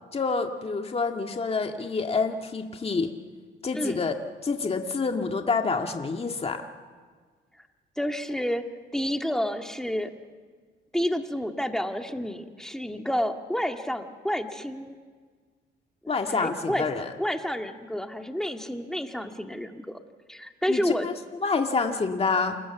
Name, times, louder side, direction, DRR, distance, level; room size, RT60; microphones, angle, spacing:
voice 1, 0.1-3.1 3.6-4.1 4.4-6.7 16.1-17.1 20.7-21.1 21.4-22.6, left 4 dB, 30° left, 4 dB, 1.9 m, -27 dB
voice 2, 8.0-8.6 8.9-10.1 10.9-15.0 16.3-16.9 17.2-20.0 20.3-21.1, equal, 5° left, 5 dB, 2.0 m, -29 dB
28.5 x 21.5 x 7.2 m, 1.5 s
cardioid pair, 90°, 20 cm